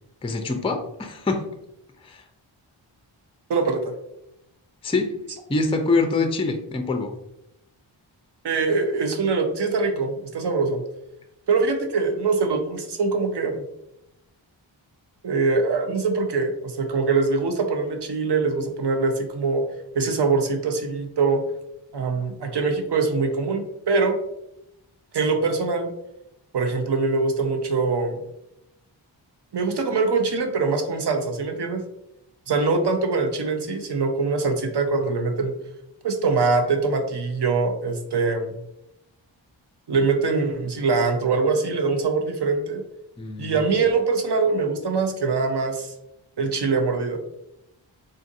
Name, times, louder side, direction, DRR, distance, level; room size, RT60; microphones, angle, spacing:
voice 1, 0.2-1.5 2.0-2.2 4.8-5.1 5.5-7.1 43.2-43.6, left 3 dB, 15° left, 5 dB, 0.4 m, -25 dB
voice 2, 3.5-3.9 8.4-10.8 11.5-13.6 15.2-19.6 19.9-21.4 21.9-24.2 25.1-25.9 26.5-28.2 29.5-31.8 32.5-35.5 36.0-38.6 39.9-42.8 43.4-45.9 46.4-47.2, right 4 dB, 60° right, 6 dB, 0.6 m, -23 dB
3.9 x 2.5 x 2.6 m, 0.83 s
wide cardioid pair, 55°, 48 cm